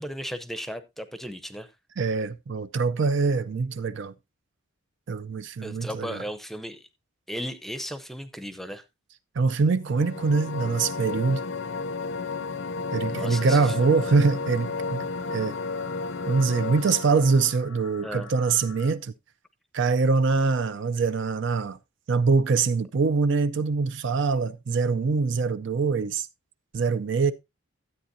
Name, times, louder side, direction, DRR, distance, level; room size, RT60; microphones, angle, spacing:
voice 1, 0.0-1.7 5.6-6.9 7.3-8.8 13.1-14.1 18.0-18.3, equal, ahead, 0.6 m, -36 dB
voice 2, 2.0-4.1 5.1-6.2 9.4-11.4 12.9-15.0 15.3-15.6 16.3-19.1 19.7-21.8 22.1-26.3 26.7-27.3, right 4 dB, 55° right, 0.4 m, -24 dB
sound 1, 9.8-17.6, left 4 dB, 55° left, 0.6 m, -32 dB
sound 2, 13.3-18.9, left 4 dB, 90° left, 1.0 m, -47 dB
13.0 x 8.6 x 2.6 m
head